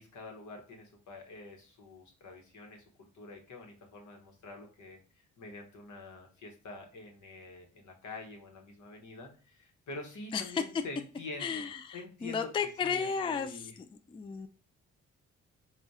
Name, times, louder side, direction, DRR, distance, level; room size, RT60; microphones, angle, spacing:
voice 1, 0.0-2.8 3.1-5.0 5.4-11.7 11.9-13.8, left 3 dB, 70° left, 2 dB, 1.1 m, -46 dB
voice 2, 10.3-10.6 11.4-14.5, left 6 dB, 20° left, 8 dB, 0.3 m, -34 dB
3.5 x 2.4 x 4.1 m, 0.39 s
cardioid pair, 70°, 30 cm